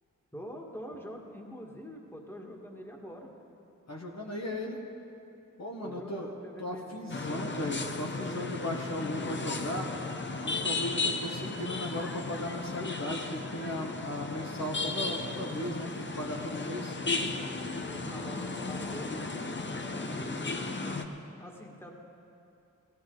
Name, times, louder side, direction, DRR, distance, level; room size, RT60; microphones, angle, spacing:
voice 1, 0.3-3.3 5.8-7.5 16.7-17.3 17.9-19.2 20.1-21.0 21.3-21.9, equal, 5° left, 0 dB, 1.8 m, -45 dB
voice 2, 3.9-4.8 5.6-9.9 10.4-17.0, left 1 dB, 55° left, -1 dB, 1.4 m, -37 dB
sound 1, 7.1-21.0, left 3 dB, 35° left, 0.9 m, -35 dB
16.5 x 14.0 x 3.9 m, 2.7 s
cardioid pair, 60°, 33 cm